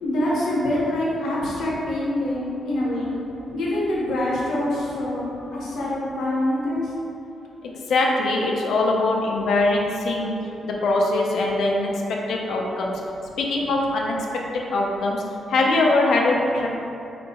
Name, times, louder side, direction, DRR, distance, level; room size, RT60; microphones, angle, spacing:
voice 1, 0.0-3.2 3.5-5.3 5.5-6.9, left 1 dB, 85° left, -6 dB, 0.9 m, -25 dB
voice 2, 7.6-10.4 10.6-12.9 13.4-14.2 14.5-15.2 15.5-16.7, left 2 dB, 65° left, -1 dB, 0.5 m, -22 dB
4.5 x 2.5 x 2.8 m, 2.8 s
wide cardioid pair, 180°, 0 cm